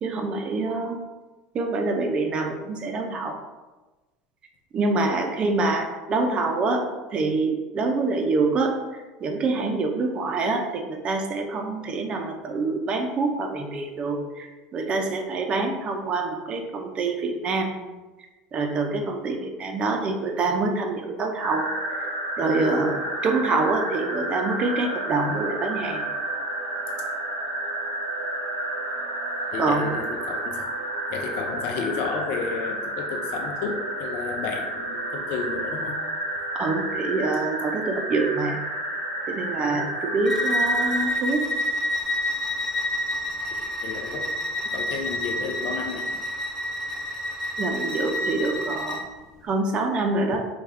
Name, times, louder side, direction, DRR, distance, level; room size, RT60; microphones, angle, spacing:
voice 1, 0.0-1.0 1.5-3.4 4.7-6.8 7.1-17.7 18.5-22.1 22.4-26.0 29.6-30.0 36.5-38.6 39.3-41.4 47.6-49.1 49.4-50.5, right 3 dB, 35° right, 3 dB, 0.5 m, -26 dB
sound 1, 21.4-41.1, right 1 dB, 70° right, 0.8 m, -31 dB
voice 2, 29.5-30.7 31.1-36.0 43.5-44.3 44.7-46.1, left 5 dB, 60° left, 2 dB, 0.4 m, -32 dB
Bowed string instrument, 40.3-49.1, left 1 dB, 15° left, 0.6 m, -28 dB
3.4 x 2.3 x 3.2 m, 1.2 s
supercardioid pair, 105°, 3 cm